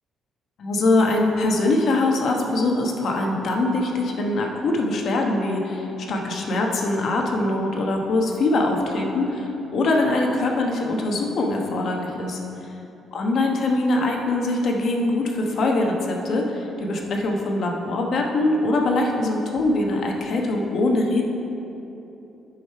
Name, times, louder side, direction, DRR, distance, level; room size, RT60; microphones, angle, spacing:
voice 1, 0.6-12.4 13.1-21.2, left 2 dB, 55° left, 1 dB, 1.1 m, -23 dB
10.0 x 5.3 x 4.6 m, 2.9 s
cardioid pair, 130°, 0 cm